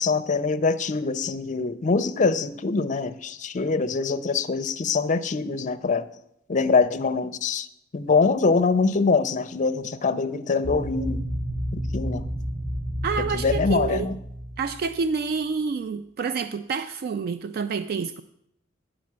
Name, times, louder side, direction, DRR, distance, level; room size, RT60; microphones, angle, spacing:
voice 1, 0.0-6.1 6.5-7.7 7.9-11.3 11.7-12.3 13.3-14.2, left 4 dB, 40° left, 0.5 m, -24 dB
sound 1, 10.6-15.3, equal, 20° right, 2.7 m, -31 dB
voice 2, 13.0-14.1 14.6-18.2, right 5 dB, 55° right, 0.3 m, -28 dB
9.3 x 5.0 x 7.4 m
head